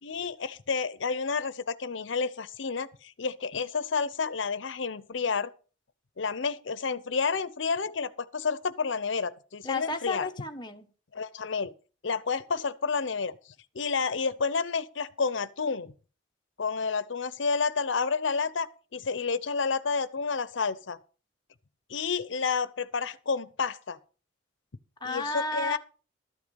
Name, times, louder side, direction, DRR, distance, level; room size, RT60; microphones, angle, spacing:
voice 1, 0.0-5.5 6.2-10.3 11.1-11.7 12.0-13.3 13.7-15.9 16.6-21.0 21.9-24.0 25.0-25.8, left 5 dB, 75° left, 0.7 m, -30 dB
voice 2, 9.6-10.9 25.0-25.8, left 3 dB, 25° left, 1.2 m, -32 dB
13.0 x 8.2 x 5.3 m
head